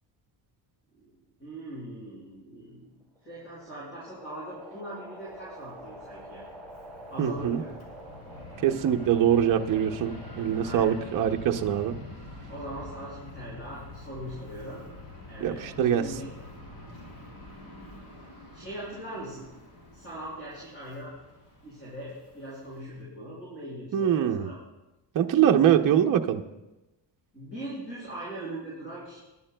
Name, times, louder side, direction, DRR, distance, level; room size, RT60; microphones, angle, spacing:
voice 1, 1.4-6.4 7.1-7.7 10.5-10.9 12.5-14.8 15.3-16.3 18.5-19.5 19.9-21.1 21.6-24.6 27.3-29.2, right 1 dB, 30° left, -8 dB, 5.7 m, -40 dB
sound 1, 3.0-11.3, right 1 dB, ahead, 4.3 m, -47 dB
Fixed-wing aircraft airplane, 5.2-23.0, left 2 dB, 85° left, 4.3 m, -46 dB
voice 2, 7.2-7.6 8.6-11.9 15.4-16.0 23.9-24.5 25.1-26.4, right 9 dB, 45° right, 4 dB, 0.7 m, -23 dB
28.5 x 11.0 x 2.2 m, 1.0 s
cardioid pair, 170°, 45 cm